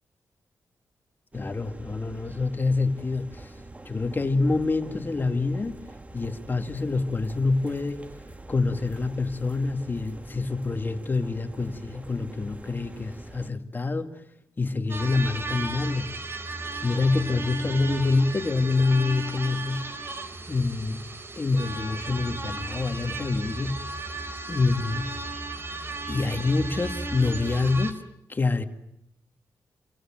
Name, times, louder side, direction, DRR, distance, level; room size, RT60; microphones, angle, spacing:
voice 1, 1.3-3.5 3.8-5.8 6.1-8.0 8.5-14.2 14.6-16.1 16.8-19.9 20.5-21.0 21.4-23.9 24.5-25.1 26.1-28.0 28.3-28.6, left 3 dB, 30° left, 2.3 m, -26 dB
sound 1, 1.3-13.5, right 2 dB, 20° right, 1.6 m, -45 dB
sound 2, 14.9-27.9, right 2 dB, 35° right, 3.8 m, -35 dB
29.5 x 25.5 x 7.7 m
wide cardioid pair, 105°, 7 cm